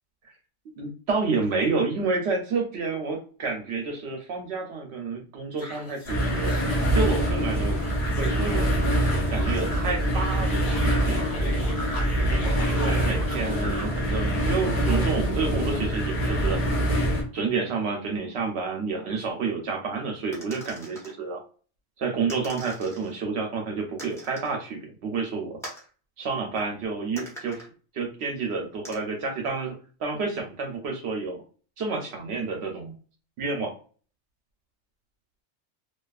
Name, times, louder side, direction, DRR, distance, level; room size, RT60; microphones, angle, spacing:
voice 1, 0.8-6.5 6.9-7.8 8.2-8.7 9.3-11.2 12.3-16.6 17.3-21.4 22.0-25.6 26.2-27.6 27.9-29.7 30.0-31.4 31.8-32.9 33.4-33.7, right 4 dB, 70° right, 2 dB, 0.8 m, -29 dB
sound 1, 5.6-14.0, left 1 dB, 70° left, 1.1 m, -39 dB
sound 2, 6.1-17.2, right 1 dB, 45° left, 1.2 m, -25 dB
sound 3, 20.3-21.1 22.3-23.1 24.0-24.5 25.6-25.9 27.2-27.7 28.8-29.0, right 1 dB, 5° left, 0.7 m, -42 dB
2.5 x 2.3 x 2.3 m, 0.39 s
omnidirectional pair, 1.2 m